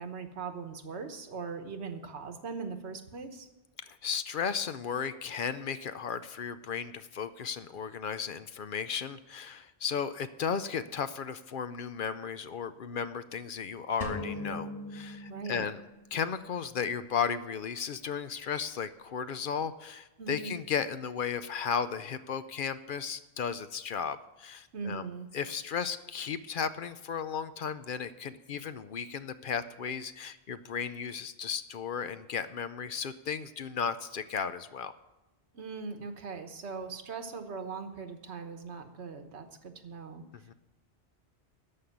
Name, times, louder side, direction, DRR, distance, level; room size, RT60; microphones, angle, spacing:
voice 1, 0.0-3.5 15.3-15.7 20.2-20.6 24.7-25.3 35.5-40.2, right 5 dB, 85° right, 7 dB, 1.4 m, -40 dB
voice 2, 3.8-15.8 16.1-25.1 25.3-34.9 40.5-40.6, left 7 dB, 60° left, 12 dB, 0.7 m, -35 dB
sound 1, 14.0-16.0, left 2 dB, 35° left, 1.5 m, -39 dB
13.5 x 5.5 x 9.2 m, 1.0 s
omnidirectional pair, 1.1 m